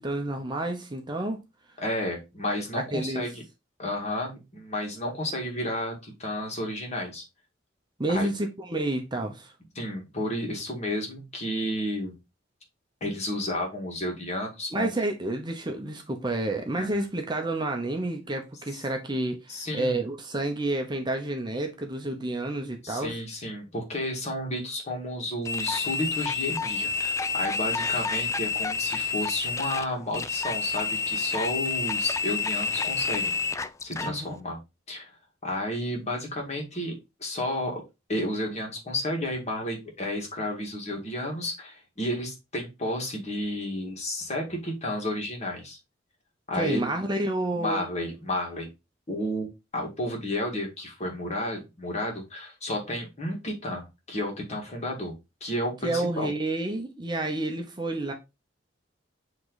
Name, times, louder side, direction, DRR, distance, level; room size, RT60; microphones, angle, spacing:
voice 1, 0.0-1.4 2.7-3.2 8.0-9.5 14.7-23.2 34.0-34.3 46.5-47.9 55.8-58.1, right 2 dB, 25° right, 0.8 m, -30 dB
voice 2, 1.8-3.4 3.8-7.2 8.1-8.3 9.8-12.2 13.0-14.9 16.7-16.9 19.5-20.0 22.8-33.4 33.8-34.6 34.9-35.1 35.4-36.9 37.2-37.8 38.1-45.8 46.5-46.9 47.5-48.7 49.1-49.5 49.7-55.1 55.4-56.3, left 1 dB, 35° left, 1.9 m, -32 dB
sound 1, 25.4-34.1, left 5 dB, 15° left, 0.3 m, -29 dB
7.6 x 3.2 x 3.9 m
head